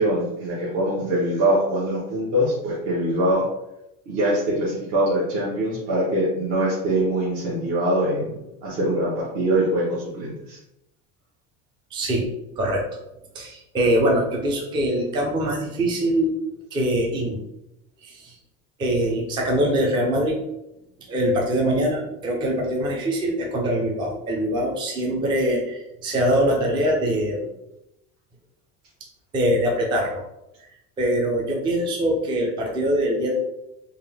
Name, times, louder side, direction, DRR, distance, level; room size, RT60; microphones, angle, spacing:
voice 1, 0.0-3.5 4.1-8.3 8.6-10.6, right 1 dB, 50° right, -7 dB, 1.0 m, -23 dB
voice 2, 11.9-12.2 12.6-12.8 13.3-16.4 16.7-17.4 18.0-18.3 18.8-20.4 21.1-27.5 29.3-30.2 31.0-33.3, equal, 15° right, 0 dB, 0.3 m, -23 dB
3.5 x 2.4 x 3.3 m, 0.86 s
cardioid pair, 175°, 34 cm